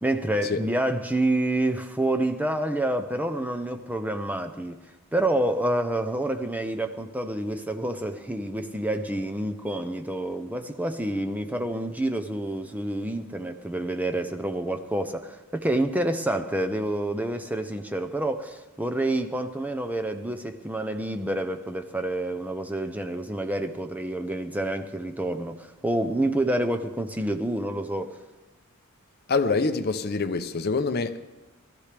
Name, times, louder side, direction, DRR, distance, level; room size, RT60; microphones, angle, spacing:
voice 1, 0.0-4.8 5.1-28.2, right 1 dB, 5° right, 0.6 m, -28 dB
voice 2, 29.3-31.2, left 4 dB, 45° left, 0.7 m, -25 dB
21.0 x 13.5 x 3.4 m
head